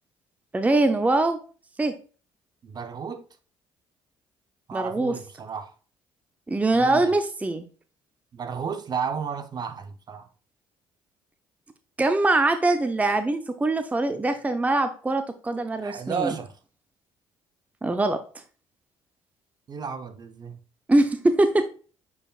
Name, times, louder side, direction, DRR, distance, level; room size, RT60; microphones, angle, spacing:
voice 1, 0.5-1.4 1.8-2.0 4.7-5.1 6.5-7.6 12.0-16.3 17.8-18.2 20.9-21.7, right 2 dB, 15° right, 0.6 m, -23 dB
voice 2, 2.6-3.3 4.7-5.7 6.7-7.1 8.3-10.3 15.8-16.5 19.7-20.6, right 6 dB, 45° right, 0.8 m, -33 dB
8.5 x 4.8 x 2.4 m
supercardioid pair, 80°, 10 cm